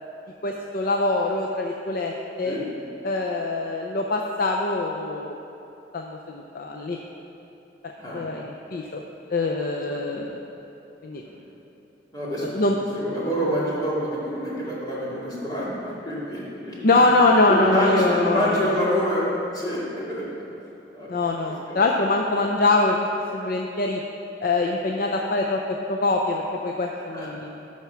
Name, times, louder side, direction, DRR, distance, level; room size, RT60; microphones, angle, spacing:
voice 1, 0.4-2.1 2.4-2.6 3.0-5.4 5.9-7.0 8.1-9.0 9.3-10.4 11.0-11.2 12.5-12.8 16.8-18.8 21.1-23.0 23.3-24.0 24.4-25.6 25.9-27.7, left 2 dB, 50° left, 1 dB, 0.5 m, -23 dB
voice 2, 12.1-12.6 12.9-17.0 17.5-19.2 19.5-20.2 20.9-21.2 21.7-21.8 27.1-27.3, equal, 20° left, -8 dB, 2.3 m, -27 dB
13.0 x 4.4 x 5.8 m, 2.9 s
head